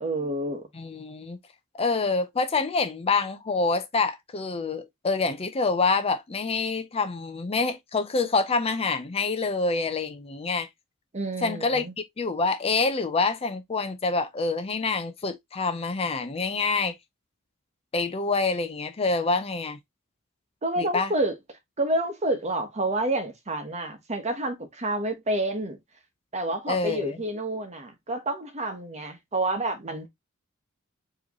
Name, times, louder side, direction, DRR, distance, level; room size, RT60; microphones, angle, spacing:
voice 1, 0.0-0.7 11.1-11.9 20.6-21.4 21.8-25.8 26.3-30.1, right 1 dB, 35° right, 1.1 m, -29 dB
voice 2, 0.7-1.4 1.8-10.7 11.4-11.8 12.2-16.9 17.9-19.8 20.8-21.1 26.7-27.2, left 4 dB, 30° left, 0.5 m, -26 dB
4.8 x 3.1 x 2.9 m
head